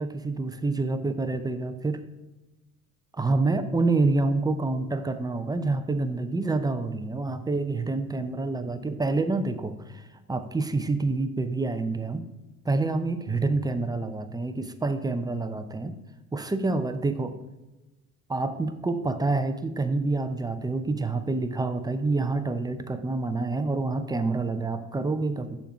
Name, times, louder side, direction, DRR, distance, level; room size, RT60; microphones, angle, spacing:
voice 1, 0.0-2.0 3.1-12.2 12.6-15.9 16.3-17.4 18.3-25.6, right 3 dB, 10° right, 9 dB, 0.7 m, -27 dB
6.8 x 4.6 x 5.6 m, 1.1 s
hypercardioid pair, 65°, 40 cm